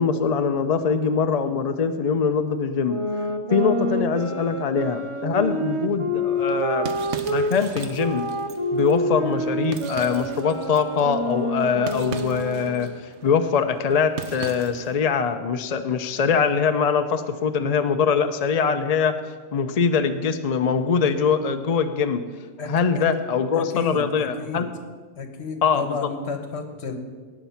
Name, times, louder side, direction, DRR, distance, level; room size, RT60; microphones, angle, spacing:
voice 1, 0.0-3.0 3.5-6.9 7.3-8.3 8.7-12.9 13.2-19.1 19.5-22.2 22.6-24.7 25.6-25.8, left 6 dB, 45° left, 8 dB, 0.5 m, -23 dB
sound 1, 2.8-7.5 8.0-12.9, equal, 30° right, 0.6 m, -27 dB
sound 2, 6.4-15.0, right 6 dB, 65° right, 1.0 m, -39 dB
voice 2, 22.6-23.1 23.5-24.6 25.2-27.0, left 5 dB, 60° left, 7 dB, 1.4 m, -32 dB
18.0 x 6.0 x 5.7 m, 1.5 s
omnidirectional pair, 1.3 m